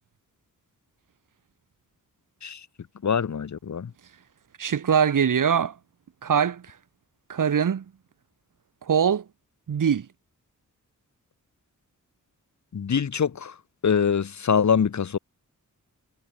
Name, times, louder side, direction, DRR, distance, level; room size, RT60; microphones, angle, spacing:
voice 1, 3.0-3.9 12.7-13.5 13.8-15.2, left 7 dB, 60° left, 3.4 m, -24 dB
voice 2, 4.6-5.7 6.2-6.6 7.3-7.8 8.9-9.2 9.7-10.1, right 7 dB, 80° right, 4.9 m, -22 dB
wide cardioid pair, 160°, 31 cm